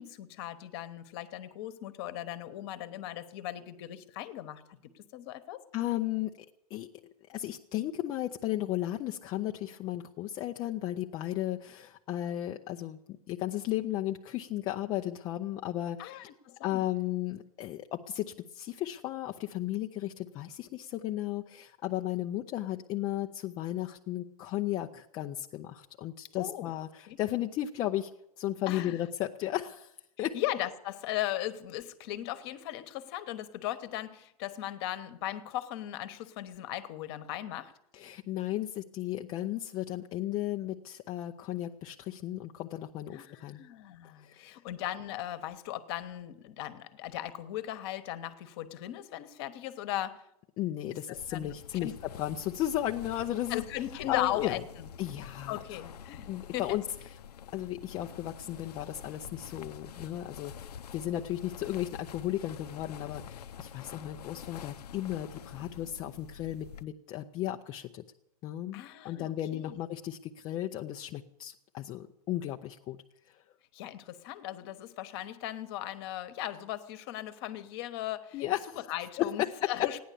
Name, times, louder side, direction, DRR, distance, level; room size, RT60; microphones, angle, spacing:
voice 1, 0.0-5.6 16.0-16.8 26.3-26.7 27.0-27.2 28.7-29.0 30.2-37.7 43.1-50.2 51.1-51.5 51.8-51.9 53.5-54.6 55.5-56.8 68.7-69.8 73.7-78.4 78.9-80.0, left 13 dB, 40° left, 12 dB, 1.1 m, -38 dB
voice 2, 5.7-6.3 6.7-16.3 16.6-28.1 28.4-29.9 30.2-30.3 37.9-43.6 44.2-44.5 50.6-53.6 54.1-54.6 55.0-55.8 56.3-56.8 57.1-57.2 57.5-68.0 68.4-73.0 78.3-78.9 79.2-79.7, left 13 dB, 20° left, 3 dB, 0.5 m, -35 dB
sound 1, 51.1-66.8, left 8 dB, 90° left, 0.7 m, -47 dB
15.5 x 10.0 x 8.4 m, 0.81 s
hypercardioid pair, 155°, 20 cm